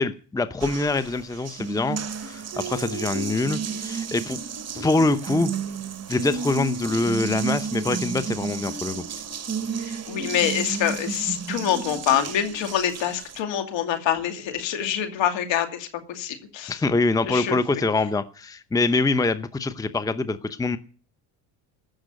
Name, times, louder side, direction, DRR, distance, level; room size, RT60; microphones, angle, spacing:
voice 1, 0.0-4.4 4.7-5.5 6.1-9.2 16.7-20.8, left 3 dB, 5° left, 13 dB, 0.8 m, -24 dB
Water tap faucet, 0.6-13.4, right 6 dB, 30° right, 1.2 m, -32 dB
voice 2, 9.8-16.8 17.3-17.8, left 10 dB, 65° left, 6 dB, 2.6 m, -26 dB
16.0 x 6.4 x 9.3 m, 0.39 s
hypercardioid pair, 70°, 49 cm